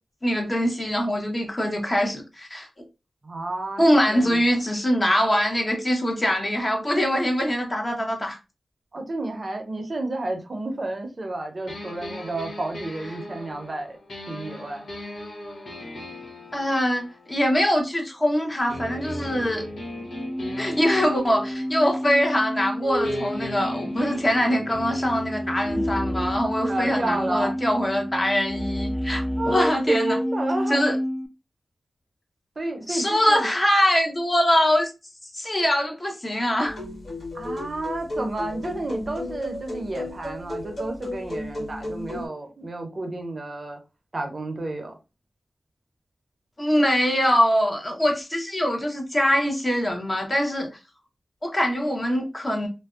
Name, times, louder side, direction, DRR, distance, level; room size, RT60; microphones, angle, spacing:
voice 1, 0.2-2.7 3.8-8.4 16.5-19.6 20.6-30.2 30.7-31.0 32.9-34.9 35.3-36.8 46.6-50.7 51.4-52.7, equal, 30° left, 0.8 m, -23 dB
voice 2, 3.2-4.4 8.9-14.0 14.3-14.8 26.6-27.6 29.4-30.8 32.6-33.5 37.3-43.8 44.1-45.0, right 2 dB, 50° right, 0.6 m, -30 dB
sound 1, 11.7-18.2 18.7-22.7 23.0-28.8, left 1 dB, 80° left, 0.9 m, -39 dB
sound 2, 20.1-31.3, equal, ahead, 0.4 m, -29 dB
sound 3, 36.7-42.3, left 1 dB, 55° left, 1.4 m, -34 dB
2.5 x 2.1 x 2.4 m
cardioid pair, 45°, 0 cm